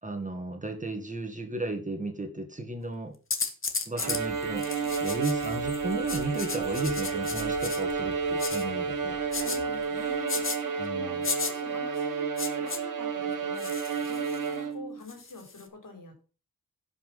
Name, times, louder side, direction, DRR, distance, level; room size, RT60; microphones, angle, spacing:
voice 1, 0.0-3.1 3.9-9.2 10.8-11.2, right 2 dB, 20° right, 5 dB, 1.9 m, -35 dB
sound 1, 3.3-4.2 4.6-5.6 6.1-7.8 8.4-8.6 9.3-9.6 10.3-10.6 11.2-11.5 12.4-12.8 13.6-14.5 15.1-15.6, left 4 dB, 35° left, 1.5 m, -33 dB
sound 2, 4.0-10.6, left 4 dB, 80° left, 2.1 m, -49 dB
Bowed string instrument, 4.0-15.0, right 5 dB, 55° right, 1.7 m, -31 dB
voice 2, 9.4-16.2, left 3 dB, 60° left, 4 dB, 4.0 m, -46 dB
11.0 x 5.8 x 5.8 m, 0.35 s
wide cardioid pair, 110°, 37 cm